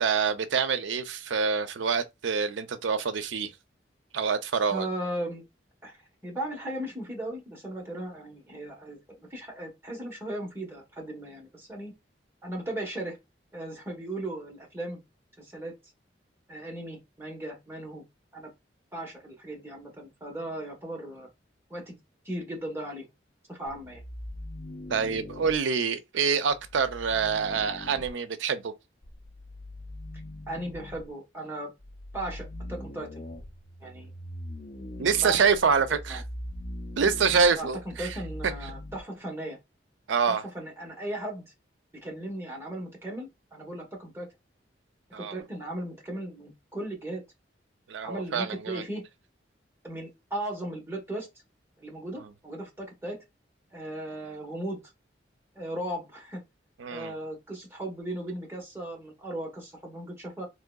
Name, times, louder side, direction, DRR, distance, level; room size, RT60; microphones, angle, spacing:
voice 1, 0.0-3.5 4.1-4.9 24.9-28.7 35.0-36.2 37.0-38.2 40.1-40.4 45.1-45.4 47.9-48.8 56.8-57.1, right 5 dB, 85° right, 0.5 m, -26 dB
voice 2, 4.7-5.4 5.8-6.0 6.2-11.9 12.4-13.2 13.5-15.0 15.4-15.7 16.5-18.0 18.3-18.5 18.9-21.3 21.7-22.0 22.2-23.0 23.5-24.0 30.5-31.7 32.1-33.2 33.8-34.1 35.2-35.4 36.1-36.2 37.6-39.6 40.3-41.4 42.0-44.3 45.2-47.2 48.0-49.0 49.8-51.3 51.8-53.2 53.7-54.8 55.5-56.4 56.9-60.5, right 1 dB, 15° right, 1.0 m, -37 dB
sound 1, 23.6-25.6 26.5-28.1 29.0-31.1 31.8-39.0, left 1 dB, 40° left, 0.5 m, -41 dB
3.6 x 3.0 x 2.2 m
head